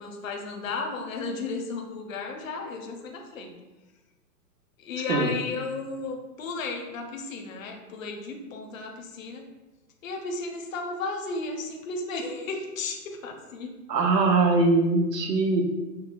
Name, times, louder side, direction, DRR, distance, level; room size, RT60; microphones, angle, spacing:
voice 1, 0.0-3.5 4.8-9.4 10.0-13.7, left 3 dB, 55° left, 3 dB, 0.6 m, -34 dB
voice 2, 13.9-15.6, right 3 dB, 85° right, 2 dB, 0.9 m, -22 dB
5.3 x 2.0 x 2.4 m, 1.1 s
hypercardioid pair, 170°, 49 cm